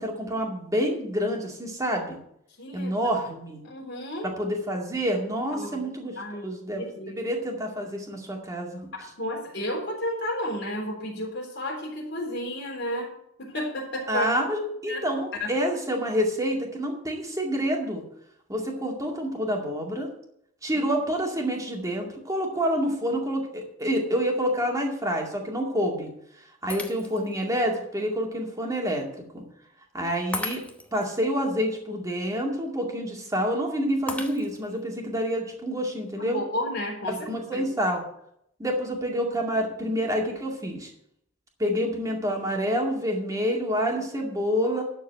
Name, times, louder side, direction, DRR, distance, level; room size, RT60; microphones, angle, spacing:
voice 1, 0.0-2.2 2.7-3.6 4.4-6.1 6.4-6.9 7.2-8.9 14.1-18.0 18.5-20.1 20.6-26.1 26.4-29.4 29.9-30.6 30.9-36.4 37.3-38.0 38.6-40.9 41.6-44.8, equal, 15° right, 0 dB, 2.2 m, -28 dB
voice 2, 2.6-2.9 3.6-4.3 5.5-5.8 6.2-7.2 9.0-13.1 13.4-14.2 14.9-15.0 15.4-15.5 36.2-37.3 37.5-37.6, left 1 dB, 55° left, -1 dB, 3.6 m, -32 dB
Shatter, 26.7-27.4 28.0-28.1 30.3-31.1 34.1-34.8, left 2 dB, 5° left, 0.9 m, -36 dB
12.0 x 4.6 x 8.1 m, 0.74 s
head